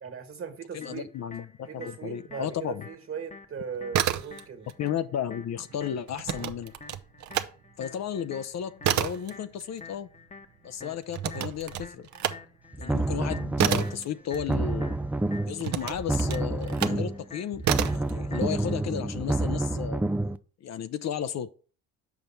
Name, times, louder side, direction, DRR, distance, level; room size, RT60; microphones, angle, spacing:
voice 1, 0.0-1.1 1.7-4.7, right 6 dB, 40° right, 1.7 m, -38 dB
voice 2, 0.7-2.9 4.8-6.7 7.8-10.1 10.6-12.1 12.8-14.9 15.5-17.7 17.9-20.1 20.6-21.5, left 9 dB, 50° left, 0.6 m, -34 dB
sound 1, 0.8-18.8, left 4 dB, 20° left, 0.9 m, -49 dB
sound 2, 3.7-4.7 5.0-7.5 7.9-14.9 15.6-17.1 17.6-18.1, right 10 dB, 55° right, 0.7 m, -30 dB
sound 3, 12.7-14.0 14.3-15.6 15.9-17.2 17.5-20.4, right 2 dB, 5° right, 0.3 m, -28 dB
7.2 x 5.3 x 4.4 m
supercardioid pair, 75°, 34 cm